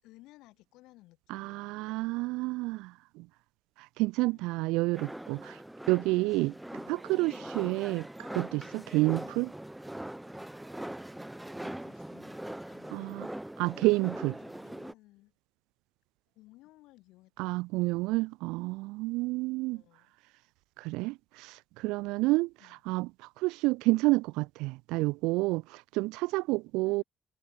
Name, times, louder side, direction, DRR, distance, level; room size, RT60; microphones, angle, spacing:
voice 1, 0.0-2.0 4.3-4.8 6.7-7.6 8.7-9.4 11.6-13.0 14.3-15.3 16.3-18.0 19.6-20.1 22.6-22.8 26.3-26.4 26.8-27.0, left 19 dB, 85° left, 6.1 m, -59 dB
voice 2, 1.3-3.3 3.8-5.6 5.9-6.5 6.9-9.5 12.9-13.3 13.6-14.3 17.4-19.8 20.8-22.5 22.9-27.0, right 22 dB, 90° right, 0.6 m, -29 dB
sound 1, 4.9-14.9, right 1 dB, 10° right, 1.7 m, -42 dB
supercardioid pair, 65°, 0 cm